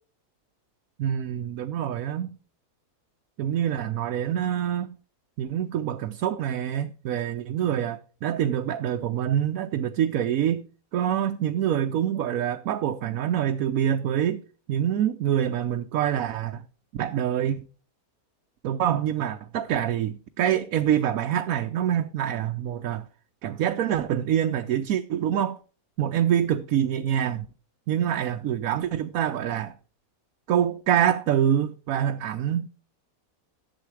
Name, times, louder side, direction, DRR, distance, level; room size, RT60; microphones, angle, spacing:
voice 1, 1.0-2.3 3.4-4.9 5.4-10.6 10.9-14.4 14.7-16.6 16.9-17.7 18.6-23.1 23.4-25.6 26.0-27.5 27.9-29.7 30.5-32.7, right 10 dB, 75° right, 1.1 m, -25 dB
11.5 x 7.3 x 4.7 m
omnidirectional pair, 1.5 m